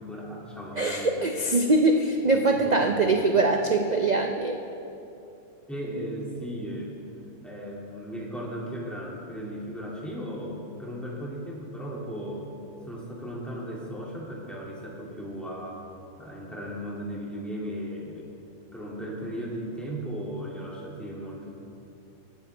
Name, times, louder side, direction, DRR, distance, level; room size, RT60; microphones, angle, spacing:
voice 1, 0.0-1.3 2.3-3.4 5.7-6.9 7.4-12.5 12.9-15.8 16.2-18.3 18.7-21.5, equal, ahead, -5 dB, 2.1 m, -36 dB
voice 2, 0.8-4.6, right 2 dB, 80° right, 3 dB, 0.3 m, -23 dB
18.5 x 9.3 x 3.3 m, 2.8 s
omnidirectional pair, 1.6 m